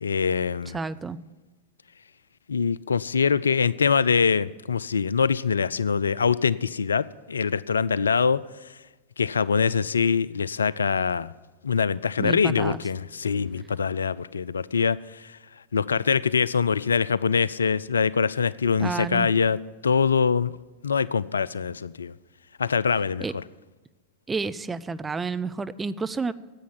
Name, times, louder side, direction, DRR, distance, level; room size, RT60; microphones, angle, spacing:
voice 1, 0.0-0.8 2.5-8.4 9.2-11.3 11.6-15.4 15.7-19.6 19.8-20.5 20.8-22.1 22.6-23.4, left 6 dB, 70° left, 19 dB, 0.3 m, -24 dB
voice 2, 0.7-1.2 12.2-12.8 18.8-19.3 23.2-23.3 24.3-26.3, right 4 dB, 15° right, 12 dB, 0.5 m, -30 dB
10.5 x 8.4 x 9.1 m, 1.2 s
figure-of-eight pair, 90°, 0 cm